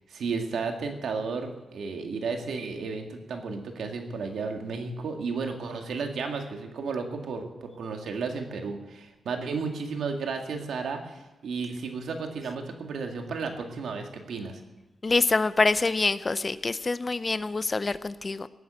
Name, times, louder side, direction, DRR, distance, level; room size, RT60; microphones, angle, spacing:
voice 1, 0.1-14.6, right 4 dB, 90° right, 4 dB, 2.0 m, -33 dB
voice 2, 15.0-18.5, left 3 dB, 30° left, 14 dB, 0.6 m, -26 dB
17.5 x 9.4 x 7.7 m, 1.1 s
wide cardioid pair, 120°, 0 cm